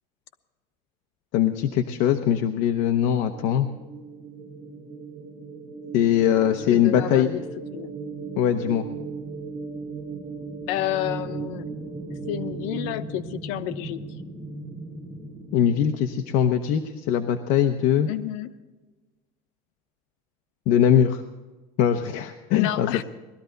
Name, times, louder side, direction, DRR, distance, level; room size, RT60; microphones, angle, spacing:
voice 1, 1.3-3.7 5.9-7.3 8.4-8.9 15.5-18.1 20.7-21.2 21.8-23.0, left 9 dB, 55° left, 7 dB, 0.8 m, -21 dB
sound 1, 2.6-12.9, right 4 dB, 40° right, 4.5 m, -37 dB
voice 2, 6.7-7.9 10.7-11.7 12.3-14.0 18.0-18.6 22.5-23.0, left 13 dB, 85° left, 11 dB, 0.9 m, -30 dB
sound 2, 9.7-17.3, right 1 dB, 5° right, 5.2 m, -40 dB
20.0 x 13.5 x 3.9 m, 1.2 s
cardioid pair, 170°, 15 cm